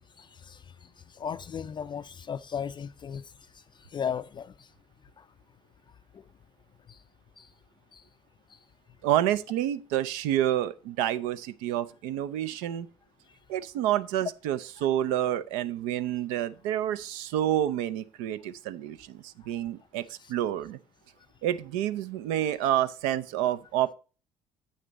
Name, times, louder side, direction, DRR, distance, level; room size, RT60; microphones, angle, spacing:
voice 1, 0.2-4.7 5.2-5.3 6.1-6.2 6.9-7.0 7.4-7.5 7.9-8.0 8.5-8.6 14.8-14.9 20.2-20.3, left 7 dB, 35° left, 0.3 m, -37 dB
voice 2, 9.0-12.9 13.5-20.8 21.4-23.9, right 12 dB, 80° right, 0.5 m, -28 dB
7.9 x 6.6 x 4.0 m
hypercardioid pair, 70°, 14 cm